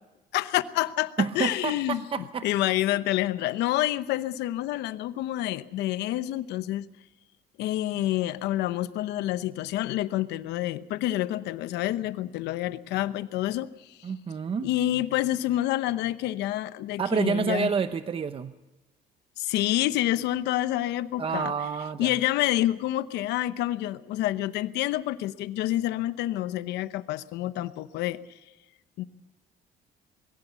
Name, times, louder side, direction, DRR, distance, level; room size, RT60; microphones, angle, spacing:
voice 1, 0.3-2.0 2.4-6.8 7.6-14.0 14.6-17.7 19.4-21.5 22.0-28.2 29.0-29.1, left 14 dB, 85° left, 14 dB, 0.9 m, -28 dB
voice 2, 1.2-2.5 14.0-14.7 17.0-18.5 21.2-22.1, right 6 dB, 35° right, 11 dB, 0.8 m, -28 dB
22.0 x 16.5 x 8.3 m, 1.1 s
cardioid pair, 110°, 17 cm